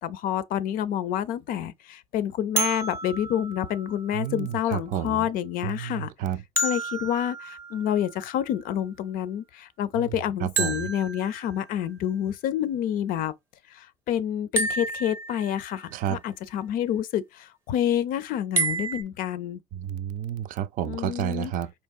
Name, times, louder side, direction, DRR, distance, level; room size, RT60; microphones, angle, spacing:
voice 1, 0.0-6.1 6.6-13.3 13.7-19.6 20.8-21.5, left 10 dB, 60° left, 0.5 m, -28 dB
sound 1, 2.6-4.5 6.6-8.4 10.6-12.0 14.6-15.9 18.6-19.0, right 3 dB, 15° right, 0.7 m, -31 dB
voice 2, 4.1-5.3 5.6-6.4 10.0-10.1 10.4-10.9 15.9-16.2 19.7-21.7, right 10 dB, 60° right, 0.4 m, -30 dB
4.5 x 2.8 x 2.4 m
cardioid pair, 150°, 16 cm